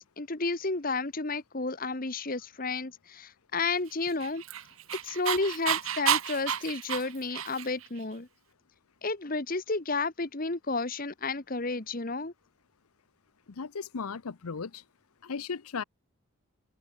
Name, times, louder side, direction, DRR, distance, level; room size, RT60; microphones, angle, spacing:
voice 1, 0.0-4.4 5.0-8.3 9.0-12.3, left 3 dB, 40° left, 1.3 m, -32 dB
Dog, 4.0-7.9, right 8 dB, 70° right, 1.7 m, -30 dB
voice 2, 13.5-14.8 15.2-15.8, left 5 dB, 85° left, 0.7 m, -36 dB
head